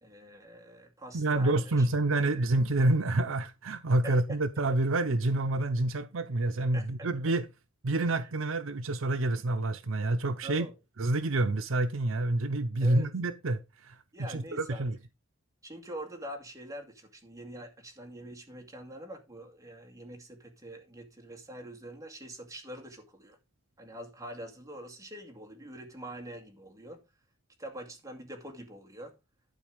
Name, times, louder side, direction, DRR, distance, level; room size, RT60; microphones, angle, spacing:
voice 1, 0.0-1.9 4.0-4.4 6.7-7.1 8.0-8.2 10.4-10.7 12.8-13.1 14.1-14.9 15.6-23.4 23.8-27.0 27.6-29.2, right 1 dB, 15° right, 2.3 m, -44 dB
voice 2, 1.1-7.5 7.8-10.7 11.0-15.0, right 2 dB, 70° right, 0.7 m, -28 dB
11.5 x 4.4 x 5.0 m
head